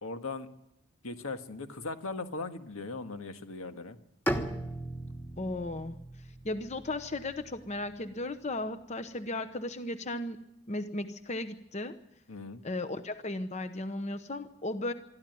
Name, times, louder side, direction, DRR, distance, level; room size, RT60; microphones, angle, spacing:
voice 1, 0.0-0.5 1.0-4.0 12.3-12.6, left 3 dB, 90° left, 7 dB, 1.7 m, -39 dB
Bowed string instrument, 4.3-8.2, right 1 dB, 10° left, 1.4 m, -38 dB
voice 2, 5.4-6.0 6.4-10.4 10.7-12.0 12.6-14.9, left 2 dB, 35° left, 10 dB, 0.9 m, -35 dB
24.5 x 13.5 x 9.3 m, 0.85 s
head